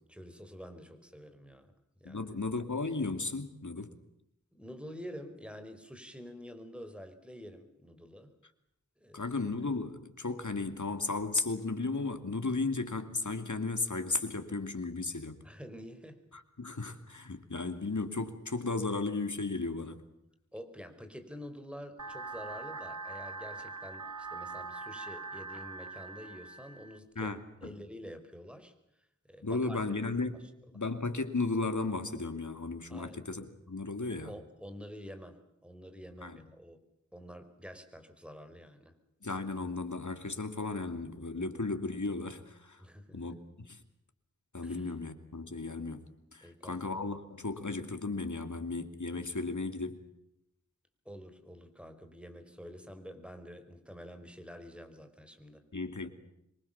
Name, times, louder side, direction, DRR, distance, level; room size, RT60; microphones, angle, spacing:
voice 1, 0.1-1.7 2.0-2.3 4.5-8.4 9.0-9.3 15.4-16.2 20.5-28.7 29.0-29.8 32.9-33.2 34.1-36.8 37.1-39.0 42.8-43.3 44.6-44.9 46.4-46.8 51.0-55.6, equal, 5° right, 4.8 m, -48 dB
voice 2, 2.0-3.9 9.1-15.4 16.3-20.0 27.2-27.4 27.7-27.8 29.4-30.4 30.7-34.3 36.2-36.4 39.2-42.8 43.1-43.8 44.5-50.0 55.7-56.1, left 3 dB, 80° left, 2.8 m, -35 dB
sound 1, 22.0-27.0, right 3 dB, 75° right, 1.7 m, -42 dB
26.5 x 24.0 x 7.2 m
wide cardioid pair, 50°, 30 cm